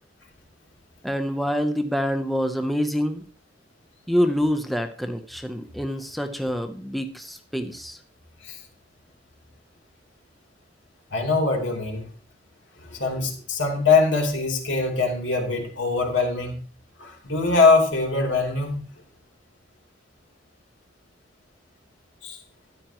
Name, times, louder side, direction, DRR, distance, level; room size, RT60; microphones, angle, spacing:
voice 1, 1.0-3.2 4.1-8.0, equal, ahead, 6 dB, 0.7 m, -26 dB
voice 2, 11.1-12.0 12.8-16.6 17.0-18.9 22.2-22.4, left 3 dB, 80° left, 1 dB, 3.0 m, -22 dB
13.5 x 10.5 x 3.0 m, 0.40 s
head